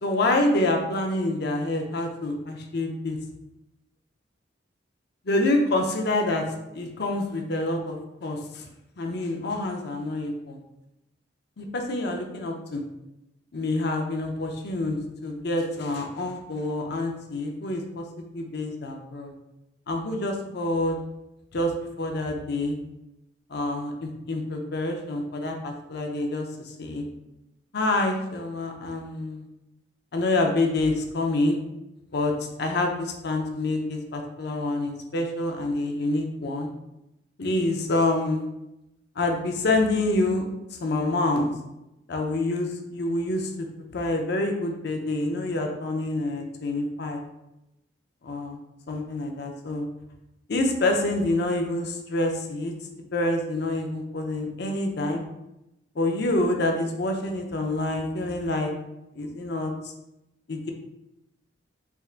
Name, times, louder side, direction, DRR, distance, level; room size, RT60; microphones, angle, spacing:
voice 1, 0.0-3.2 5.3-6.5 6.7-8.6 9.0-10.6 11.6-12.8 13.5-19.3 19.9-21.0 21.5-22.8 23.5-27.1 27.7-29.5 30.1-31.6 32.1-36.7 37.4-38.5 39.2-41.5 42.1-43.7 43.9-47.2 48.2-48.6 48.9-49.9 50.5-52.7 53.1-55.2 56.0-58.7 59.1-59.9 60.5-60.7, left 2 dB, 60° left, 3 dB, 0.6 m, -27 dB
4.3 x 3.5 x 2.4 m, 0.90 s
head